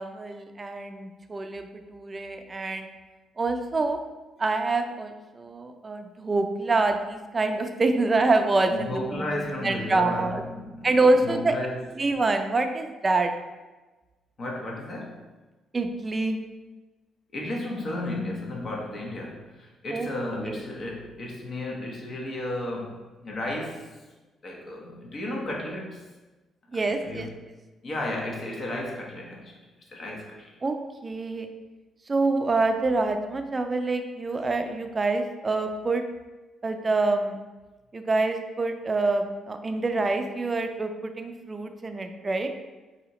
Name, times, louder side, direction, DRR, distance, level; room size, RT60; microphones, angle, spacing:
voice 1, 0.0-2.9 3.4-4.0 4.4-10.4 10.8-11.5 12.0-13.3 15.7-16.4 19.9-20.6 26.7-27.3 30.6-30.8 31.0-31.5 32.1-36.0 36.6-37.4 37.9-42.5, right 3 dB, 30° right, 6 dB, 0.4 m, -26 dB
voice 2, 8.7-11.9 14.4-15.2 17.3-23.9 24.4-26.0 27.0-27.3 27.8-29.5 29.9-30.5, left 1 dB, 45° left, -1 dB, 0.8 m, -33 dB
4.0 x 2.7 x 3.0 m, 1.2 s
cardioid pair, 90°, 0 cm